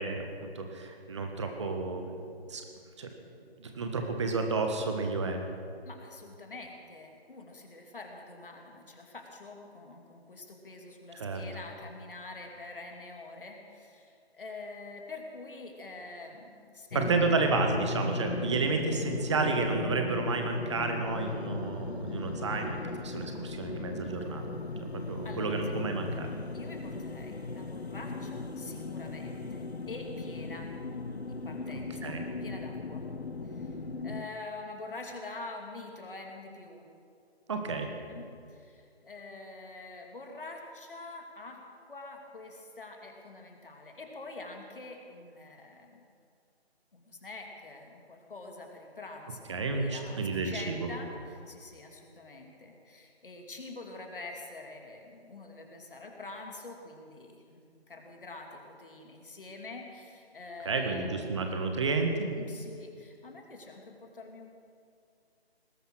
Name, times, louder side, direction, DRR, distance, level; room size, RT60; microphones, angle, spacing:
voice 1, 0.0-2.0 2.5-2.6 3.0-3.1 3.6-5.4 11.1-11.4 16.9-24.5 25.1-26.3 32.0-32.2 37.5-37.9 49.5-50.9 60.6-62.3, right 3 dB, 25° right, 4 dB, 1.6 m, -31 dB
voice 2, 5.8-17.1 25.2-25.7 26.5-30.7 31.3-32.2 32.4-33.1 33.4-36.9 38.1-41.6 41.9-46.1 46.9-49.5 49.7-57.6 57.9-61.1 62.4-64.5, left 3 dB, 55° left, 2 dB, 2.8 m, -46 dB
sound 1, 16.9-34.3, left 3 dB, 75° left, 1.1 m, -37 dB
19.5 x 11.0 x 6.3 m, 2.4 s
figure-of-eight pair, 160°, 32 cm